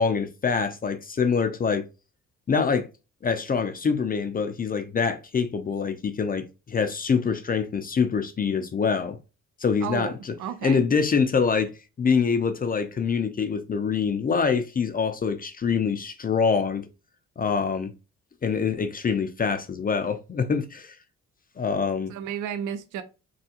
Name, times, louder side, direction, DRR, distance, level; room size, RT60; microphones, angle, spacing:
voice 1, 0.0-1.8 2.5-2.9 3.2-9.2 9.6-10.3 10.6-11.7 12.0-16.8 17.4-17.9 18.4-21.0 21.6-22.1, left 5 dB, 30° left, 0.5 m, -25 dB
voice 2, 9.8-10.8 22.1-23.0, right 8 dB, 85° right, 0.5 m, -33 dB
3.4 x 2.4 x 2.8 m
cardioid pair, 90°, 30 cm